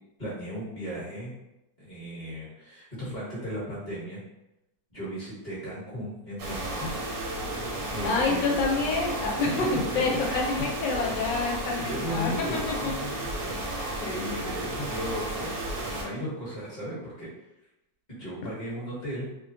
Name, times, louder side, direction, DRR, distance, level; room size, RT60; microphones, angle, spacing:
voice 1, 0.2-1.3 1.8-4.2 4.9-6.9 7.9-8.5 9.4-9.6 10.3-10.5 11.7-15.6 16.0-17.3 18.1-19.2, equal, 30° left, -8 dB, 1.0 m, -36 dB
sound 1, 6.4-16.0, right 1 dB, 65° right, 1.0 m, -33 dB
voice 2, 8.0-12.3 14.0-14.3, left 3 dB, 85° left, -1 dB, 1.3 m, -27 dB
2.9 x 2.2 x 2.6 m, 0.92 s
omnidirectional pair, 1.9 m